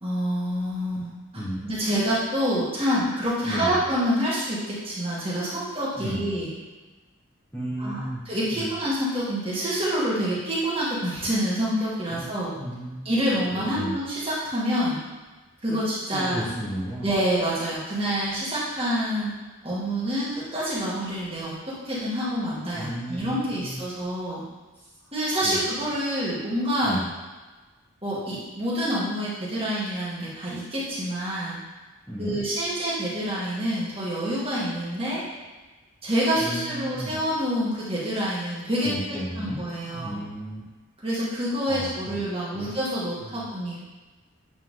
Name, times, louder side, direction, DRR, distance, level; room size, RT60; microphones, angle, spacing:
voice 1, 0.0-1.1 1.6-6.5 7.8-12.5 13.1-15.0 15.6-16.4 17.0-19.3 19.6-21.5 21.9-24.4 25.1-27.0 28.0-31.6 32.2-35.2 36.0-40.2 41.0-43.8, equal, 25° right, -8 dB, 2.0 m, -27 dB
voice 2, 3.4-3.8 6.0-6.2 7.5-8.2 8.5-8.7 12.1-12.3 12.5-13.1 13.5-14.0 15.7-15.8 16.1-17.1 22.7-23.8 24.7-24.9 25.4-25.6 26.8-27.1 32.1-32.4 36.3-37.2 38.8-39.7 39.9-40.6 41.7-42.2 42.5-42.7 43.2-43.4, equal, 10° left, -10 dB, 1.4 m, -33 dB
8.9 x 3.6 x 3.8 m, 1.2 s
head